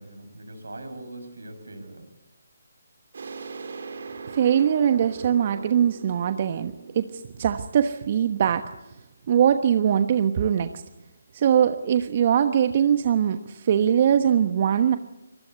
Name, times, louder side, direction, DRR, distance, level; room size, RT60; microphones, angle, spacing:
voice 1, 0.0-2.1, right 2 dB, 80° right, 7 dB, 7.1 m, -41 dB
sound 1, 3.1-8.6, right 4 dB, 60° right, 4.0 m, -40 dB
voice 2, 4.3-8.7 9.3-10.7 11.3-15.0, right 9 dB, 40° right, 8 dB, 1.1 m, -22 dB
24.5 x 21.0 x 8.1 m, 0.92 s
figure-of-eight pair, 150°, 0 cm